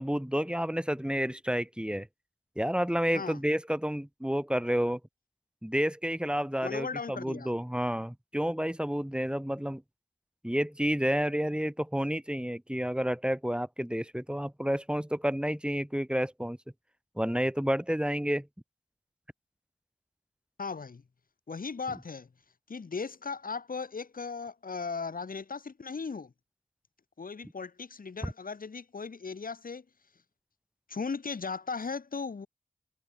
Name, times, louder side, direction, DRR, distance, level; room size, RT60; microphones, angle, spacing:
voice 1, 0.0-2.1 2.6-5.0 5.6-9.8 10.4-16.6 17.2-18.5 28.2-28.3, equal, 5° right, 6.4 m, -30 dB
voice 2, 6.6-7.5 20.6-21.0 21.5-22.3 22.7-26.3 27.2-29.8 30.9-32.5, left 4 dB, 90° left, 6.6 m, -37 dB
cardioid pair, 45°, 14 cm